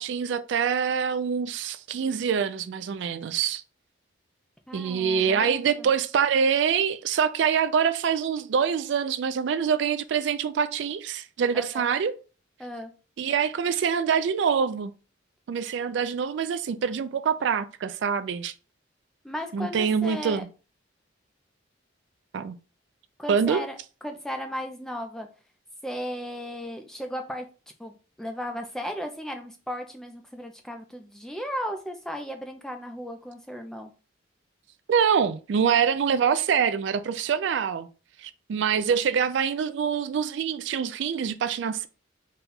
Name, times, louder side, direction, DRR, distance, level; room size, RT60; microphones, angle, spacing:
voice 1, 0.0-3.6 4.7-12.1 13.2-14.9 15.5-18.5 19.5-20.5 22.3-22.6 23.3-23.6 34.9-37.9 38.2-41.9, right 7 dB, 65° right, 0.3 m, -25 dB
voice 2, 4.7-5.9 11.5-11.9 12.6-12.9 19.2-20.4 23.2-23.8 24.0-25.3 25.8-27.5 27.8-33.9, equal, 5° left, 0.4 m, -35 dB
4.2 x 2.3 x 3.8 m
head